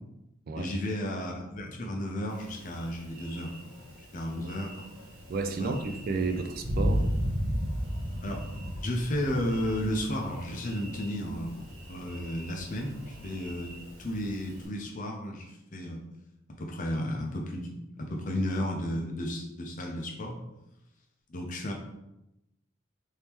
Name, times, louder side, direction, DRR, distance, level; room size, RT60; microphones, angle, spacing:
voice 1, 0.6-3.7 4.1-4.9 5.6-5.7 8.2-8.5 8.8-16.0 16.6-20.4 21.3-21.7, left 1 dB, 40° left, 1 dB, 0.5 m, -33 dB
Thunder, 2.3-14.7, equal, 70° right, 1.0 m, -36 dB
voice 2, 5.3-7.1, right 3 dB, 45° right, 7 dB, 0.3 m, -32 dB
3.5 x 2.7 x 3.0 m, 0.90 s
head